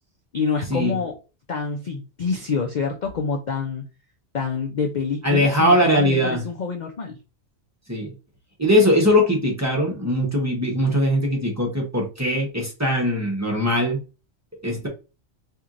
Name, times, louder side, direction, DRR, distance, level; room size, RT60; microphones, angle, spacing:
voice 1, 0.3-1.2 1.5-3.9 4.3-7.2, left 5 dB, 50° left, 0.5 m, -27 dB
voice 2, 5.2-6.4 7.9-8.1 8.6-14.0 14.6-14.9, equal, 15° right, 0.9 m, -20 dB
4.4 x 2.7 x 2.5 m
omnidirectional pair, 1.3 m